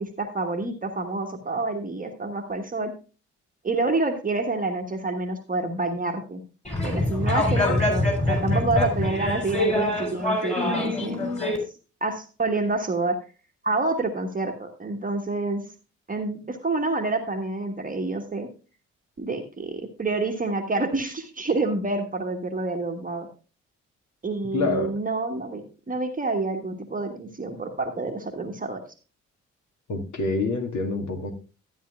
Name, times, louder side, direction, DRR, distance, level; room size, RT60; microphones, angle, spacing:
voice 1, 0.0-2.9 3.6-6.4 6.8-11.3 12.0-13.2 13.6-15.6 16.1-18.5 19.2-23.3 24.2-28.8, right 3 dB, 20° right, 4 dB, 1.3 m, -28 dB
sound 1, 6.6-11.6, left 1 dB, 20° left, 3.6 m, -24 dB
voice 2, 24.5-24.9 29.9-31.3, left 3 dB, 50° left, 3 dB, 2.0 m, -26 dB
13.0 x 9.5 x 2.4 m, 0.33 s
figure-of-eight pair, 40°, 37 cm